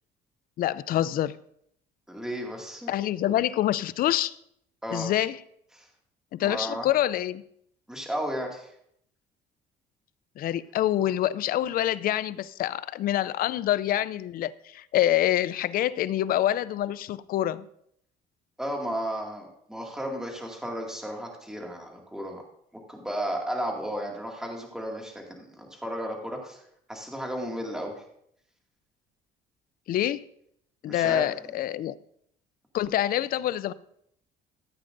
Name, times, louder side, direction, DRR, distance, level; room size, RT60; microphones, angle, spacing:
voice 1, 0.6-1.3 2.9-4.3 4.9-5.4 6.3-7.4 10.4-17.7 29.9-30.2 30.8-32.0 32.7-33.7, left 12 dB, 60° left, 0.4 m, -26 dB
voice 2, 2.1-2.9 4.8-5.1 5.8-5.9 6.4-6.9 7.9-8.7 18.6-22.4 22.9-26.6 26.9-28.0 30.9-31.3, equal, 5° right, 2.2 m, -34 dB
14.0 x 8.7 x 2.6 m
cardioid pair, 110°, 17 cm